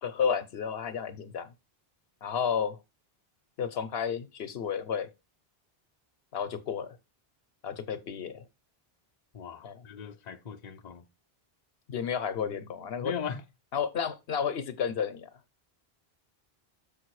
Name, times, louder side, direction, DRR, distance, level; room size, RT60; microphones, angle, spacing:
voice 1, 0.0-1.5 2.2-2.8 3.6-5.1 6.3-6.9 7.6-8.4 9.6-9.8 11.9-13.1 13.7-15.3, left 7 dB, 80° left, 1.0 m, -31 dB
voice 2, 9.3-11.1 13.0-13.4, left 7 dB, 45° left, 0.8 m, -38 dB
6.7 x 5.5 x 4.7 m
omnidirectional pair, 1.0 m